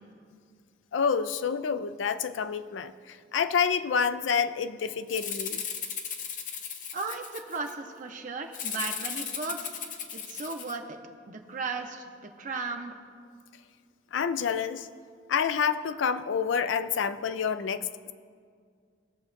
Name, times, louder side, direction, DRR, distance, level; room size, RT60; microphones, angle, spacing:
voice 1, 0.9-5.6 14.1-14.9 15.3-17.9, left 6 dB, 80° left, 12 dB, 0.4 m, -28 dB
Rattle (instrument), 5.1-7.7 8.5-10.8, left 7 dB, 45° left, 0.7 m, -36 dB
voice 2, 6.9-9.8 10.1-11.0 11.3-12.9, right 4 dB, 45° right, 4 dB, 0.7 m, -36 dB
21.0 x 7.0 x 2.6 m, 2.1 s
head